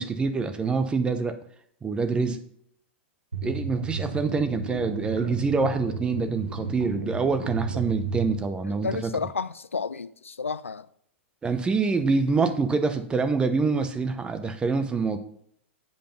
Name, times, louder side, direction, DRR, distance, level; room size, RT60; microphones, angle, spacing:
voice 1, 0.0-1.4 1.8-2.4 3.4-9.1 11.4-15.2, right 4 dB, 15° right, 0.9 m, -26 dB
sound 1, 3.3-8.4, right 4 dB, 90° right, 1.3 m, -33 dB
voice 2, 8.6-10.9, left 5 dB, 85° left, 0.4 m, -31 dB
8.1 x 5.1 x 5.3 m
figure-of-eight pair, 105°, 7 cm